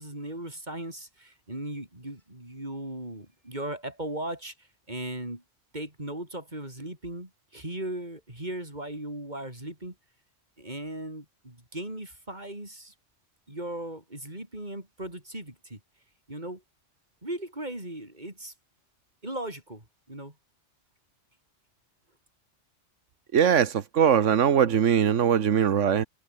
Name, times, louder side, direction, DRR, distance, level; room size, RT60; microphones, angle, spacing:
voice 1, 0.0-4.5 4.9-5.4 5.7-9.9 10.6-12.9 13.5-15.8 16.3-16.6 17.2-18.5 19.2-20.3, right 1 dB, 35° right, 6.4 m, -37 dB
voice 2, 23.3-26.0, right 8 dB, 80° right, 1.5 m, -21 dB
omnidirectional pair, 1.2 m